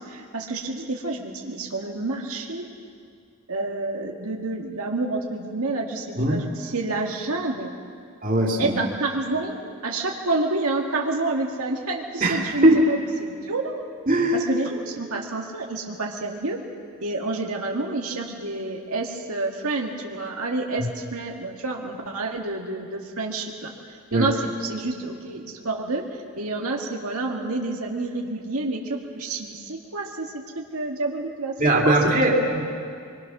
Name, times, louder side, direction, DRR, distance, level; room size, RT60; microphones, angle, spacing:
voice 1, 0.0-2.7 3.5-7.8 8.6-9.6 9.8-13.8 14.3-16.6 17.0-31.6 31.8-32.4, right 2 dB, 90° right, 0 dB, 1.9 m, -29 dB
voice 2, 8.2-8.8 12.2-12.8 14.1-14.4 24.1-24.3 31.6-32.7, right 1 dB, 40° right, -1 dB, 2.7 m, -20 dB
26.0 x 23.0 x 6.1 m, 2.3 s
head